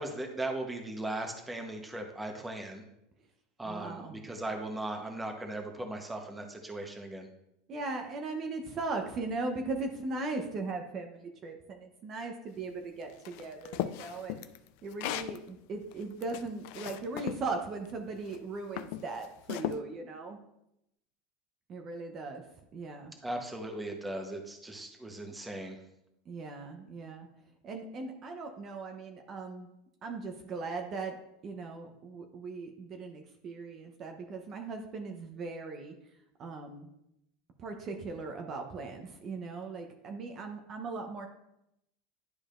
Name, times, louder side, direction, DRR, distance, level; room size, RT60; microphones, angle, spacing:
voice 1, 0.0-2.8 3.6-7.3 23.2-25.8, right 1 dB, 10° right, 3 dB, 1.0 m, -38 dB
voice 2, 3.6-4.2 7.7-14.4 14.8-20.4 21.7-22.4 22.7-23.1 26.3-27.3 27.6-29.7 30.0-31.1 31.4-35.9 36.4-36.9 37.6-41.3, right 3 dB, 40° right, 3 dB, 0.8 m, -38 dB
sound 1, 13.2-15.4 15.9-17.4 18.2-18.4 18.8-19.8, left 13 dB, 65° left, 0.4 m, -37 dB
10.5 x 4.9 x 2.5 m, 0.83 s
supercardioid pair, 115°, 0 cm